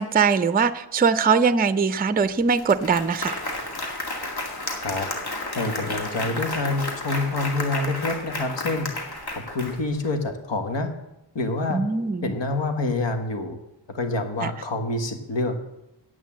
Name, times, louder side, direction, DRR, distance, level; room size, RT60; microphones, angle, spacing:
voice 1, 0.0-3.4 11.7-12.3, right 5 dB, 20° right, 13 dB, 0.5 m, -21 dB
Applause, 2.2-2.3 2.6-10.1, left 2 dB, 60° left, 2.1 m, -32 dB
voice 2, 5.5-8.9 9.3-10.9 11.4-11.8 12.2-13.6 13.9-15.6, left 2 dB, 75° left, 6 dB, 1.7 m, -27 dB
9.3 x 8.4 x 7.4 m, 0.88 s
wide cardioid pair, 105°, 44 cm